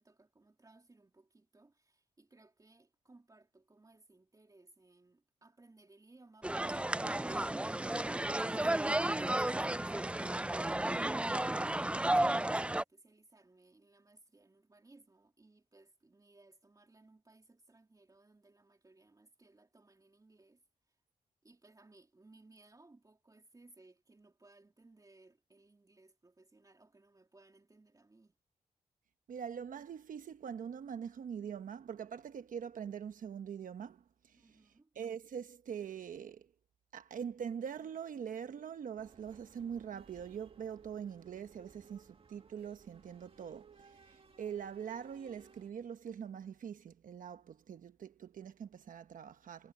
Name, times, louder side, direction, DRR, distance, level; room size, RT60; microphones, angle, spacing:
voice 1, 0.0-20.6 20.9-21.0 21.4-28.3 34.4-34.9, right 2 dB, 25° right, 3.4 m, -63 dB
sound 1, 6.4-12.8, right 1 dB, 10° right, 0.5 m, -33 dB
voice 2, 29.3-36.5 36.9-49.7, right 8 dB, 75° right, 1.0 m, -43 dB
sound 2, 39.0-45.7, right 5 dB, 45° right, 2.3 m, -61 dB
cardioid pair, 80°, 14 cm